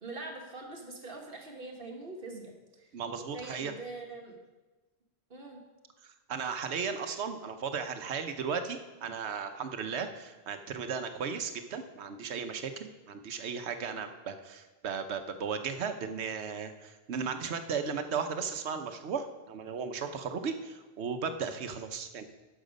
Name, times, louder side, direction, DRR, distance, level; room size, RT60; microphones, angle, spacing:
voice 1, 0.0-2.9 3.3-4.4 5.3-5.6, right 3 dB, 50° right, 1 dB, 1.6 m, -43 dB
voice 2, 2.9-3.7 6.0-22.2, right 6 dB, 70° right, 7 dB, 1.1 m, -36 dB
11.5 x 6.4 x 5.2 m, 1.2 s
omnidirectional pair, 1.2 m